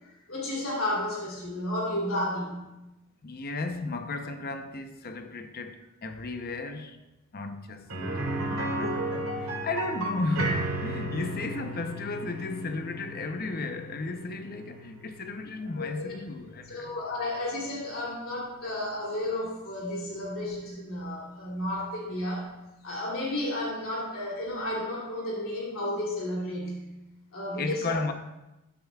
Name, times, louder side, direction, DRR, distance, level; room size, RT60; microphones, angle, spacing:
voice 1, 0.0-2.7 6.6-6.7 15.8-16.1 16.7-22.5 22.8-26.8 27.3-28.0, left 1 dB, 65° left, 3.0 m, -32 dB
voice 2, 3.2-7.0 7.3-7.9 8.6-17.0 27.5-28.1, left 3 dB, 45° left, 0.7 m, -34 dB
sound 1, 7.9-17.7 18.0-18.1 20.5-20.6, right 1 dB, 70° right, 2.2 m, -34 dB
13.5 x 11.5 x 2.3 m
head